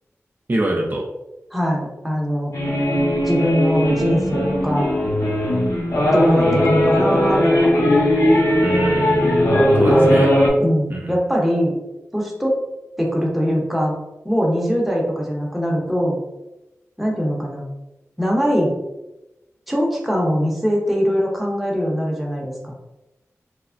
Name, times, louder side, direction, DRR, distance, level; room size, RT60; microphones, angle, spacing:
voice 1, 0.5-1.1 8.6-9.3 9.7-10.3 10.9-11.1, right 1 dB, 40° right, -2 dB, 0.4 m, -24 dB
voice 2, 1.5-2.5 3.2-4.9 6.1-7.7 9.9-11.8 12.1-12.6 13.0-14.0 14.2-16.2 17.0-17.7 18.2-18.7 19.7-22.7, equal, ahead, -2 dB, 0.8 m, -21 dB
sound 1, 2.5-10.5, equal, 70° left, 0.7 m, -18 dB
3.2 x 2.0 x 2.5 m, 0.96 s
cardioid pair, 50°, 5 cm